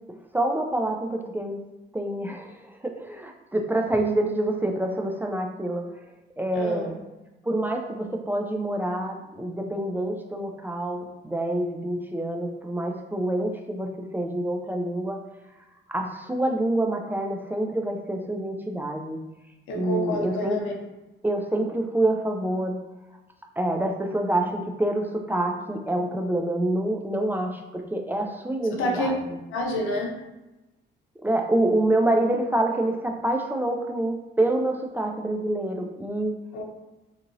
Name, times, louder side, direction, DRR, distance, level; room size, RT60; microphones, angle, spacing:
voice 1, 0.3-1.6 1.9-5.9 6.4-7.0 7.4-15.2 15.9-19.2 19.7-20.6 21.2-22.8 23.6-29.4 31.2-36.3, right 1 dB, 10° right, 2 dB, 0.3 m, -27 dB
voice 2, 6.6-6.9 19.7-20.7 28.8-29.1 29.5-30.1 36.5-36.6, left 1 dB, 85° left, 0 dB, 0.6 m, -28 dB
2.8 x 2.6 x 2.5 m, 1.0 s
cardioid pair, 90°, 20 cm